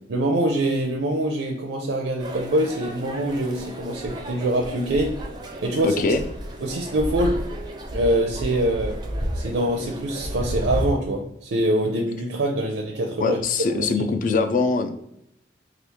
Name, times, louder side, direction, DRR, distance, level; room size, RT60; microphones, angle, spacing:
voice 1, 0.1-5.1 5.6-6.0 6.6-7.4 7.9-9.0 9.3-13.4 13.7-14.1, right 1 dB, 85° right, 1 dB, 0.5 m, -24 dB
sound 1, 2.2-10.9, equal, 25° right, 0.4 m, -32 dB
voice 2, 5.8-6.2 13.2-15.0, left 4 dB, 45° left, 8 dB, 0.3 m, -22 dB
3.0 x 2.4 x 3.4 m, 0.77 s
head